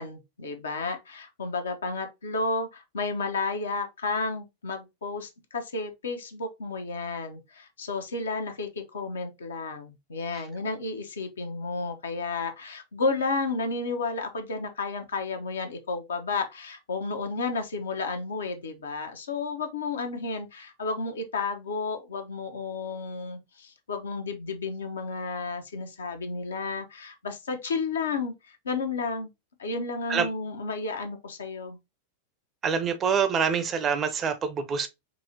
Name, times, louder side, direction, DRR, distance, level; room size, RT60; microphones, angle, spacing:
voice 1, 0.0-29.3 29.6-31.8, left 3 dB, 70° left, 0.8 m, -32 dB
voice 2, 32.6-34.9, right 6 dB, 25° right, 0.6 m, -26 dB
5.1 x 2.8 x 2.8 m
figure-of-eight pair, 90°, 0 cm